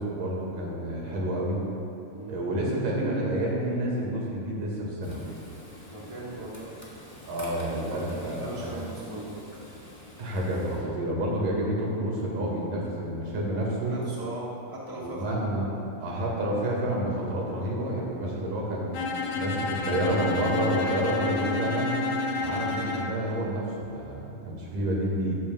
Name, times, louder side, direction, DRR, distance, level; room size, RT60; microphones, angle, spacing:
voice 1, 0.0-1.6 2.3-5.2 7.3-8.8 10.2-13.9 15.0-15.7 16.0-18.9 19.3-22.0 22.4-25.4, right 1 dB, 85° right, -3 dB, 3.7 m, -29 dB
Frying (food), 5.0-10.8, left 1 dB, 15° left, 1.9 m, -46 dB
voice 2, 5.9-6.7 7.8-9.4 13.8-15.4, right 1 dB, 10° right, -8 dB, 1.8 m, -39 dB
Bowed string instrument, 18.9-23.1, left 4 dB, 80° left, 1.1 m, -30 dB
15.0 x 14.0 x 2.4 m, 2.9 s
omnidirectional pair, 3.7 m